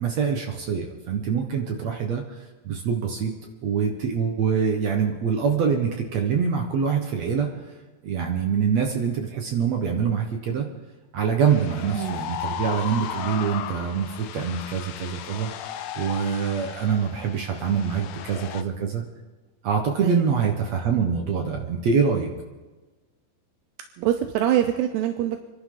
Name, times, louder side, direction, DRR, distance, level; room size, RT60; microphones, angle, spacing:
voice 1, 0.0-3.3 3.6-7.5 8.0-10.7 11.1-15.5 16.0-19.0 19.6-22.3, right 6 dB, 65° right, 2 dB, 1.8 m, -25 dB
sound 1, 11.5-18.6, left 9 dB, 85° left, 1.8 m, -35 dB
voice 2, 24.0-25.4, right 11 dB, 80° right, 6 dB, 2.9 m, -24 dB
29.0 x 12.0 x 3.9 m, 1.2 s
omnidirectional pair, 4.7 m